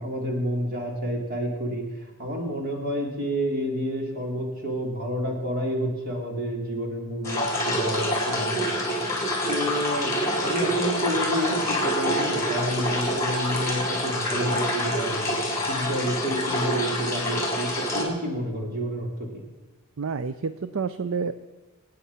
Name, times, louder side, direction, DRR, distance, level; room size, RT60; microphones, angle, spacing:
voice 1, 0.0-8.9 9.5-15.4 15.7-19.4, equal, 40° right, 0 dB, 3.6 m, -29 dB
sound 1, 7.2-18.0, equal, 15° left, 4.0 m, -26 dB
voice 2, 20.0-21.3, right 5 dB, 60° right, 13 dB, 0.5 m, -29 dB
26.5 x 9.2 x 5.6 m, 1.2 s
head